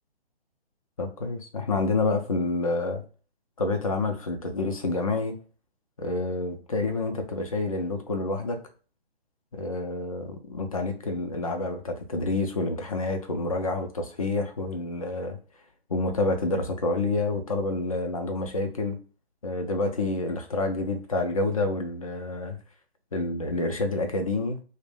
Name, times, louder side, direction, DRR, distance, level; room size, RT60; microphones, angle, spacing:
voice 1, 1.0-3.0 3.6-5.4 6.0-8.6 9.5-15.4 15.9-19.0 19.4-22.6 23.1-24.6, left 2 dB, 35° left, 4 dB, 0.4 m, -28 dB
2.4 x 2.1 x 3.3 m, 0.37 s
figure-of-eight pair, 145°, 32 cm